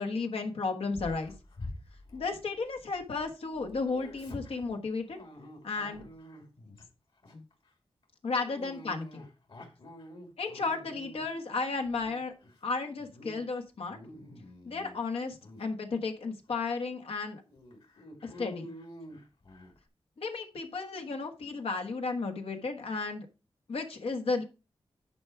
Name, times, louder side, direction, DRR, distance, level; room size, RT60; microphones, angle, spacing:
voice 1, 0.0-1.3 2.1-5.2 5.6-6.0 7.3-7.4 8.2-9.2 10.4-12.3 12.6-14.0 14.6-17.4 18.2-18.7 20.2-23.3 23.7-24.4, left 4 dB, 85° left, 5 dB, 1.4 m, -33 dB
Dog, 0.9-3.2 3.5-6.9 7.2-7.5 8.3-11.4 11.9-12.6 13.0-13.4 13.7-15.0 15.4-15.7 16.3-16.4 16.7-16.8 17.5-19.8, left 1 dB, 70° left, 2.6 m, -47 dB
10.5 x 4.7 x 4.6 m, 0.31 s
wide cardioid pair, 100°, 10 cm